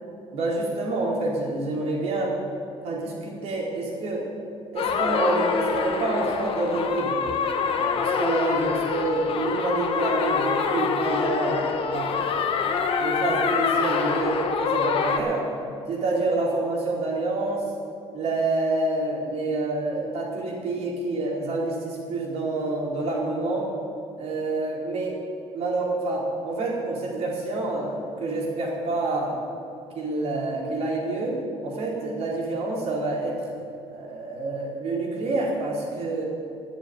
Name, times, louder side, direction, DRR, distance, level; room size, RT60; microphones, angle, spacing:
voice 1, 0.3-2.4 2.8-4.3 4.7-7.2 7.7-12.2 13.0-15.5 15.9-17.7 18.1-23.7 24.2-25.2 25.5-29.4 29.9-33.5 33.9-36.2, right 2 dB, 65° right, -3 dB, 4.3 m, -27 dB
sound 1, 4.8-15.2, left 6 dB, 55° left, 1.3 m, -25 dB
13.5 x 7.5 x 9.6 m, 2.6 s
cardioid pair, 115°, 12 cm